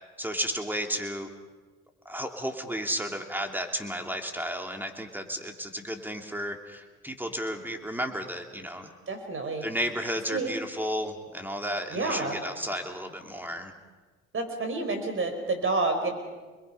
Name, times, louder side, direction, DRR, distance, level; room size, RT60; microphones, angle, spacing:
voice 1, 0.2-1.3 2.0-8.9 9.6-13.7, equal, 5° right, 4 dB, 2.9 m, -33 dB
voice 2, 9.1-9.6 10.3-10.5 11.9-12.4 14.3-16.1, right 3 dB, 45° right, 5 dB, 5.2 m, -29 dB
26.5 x 22.0 x 5.7 m, 1.3 s
cardioid pair, 80°, 30 cm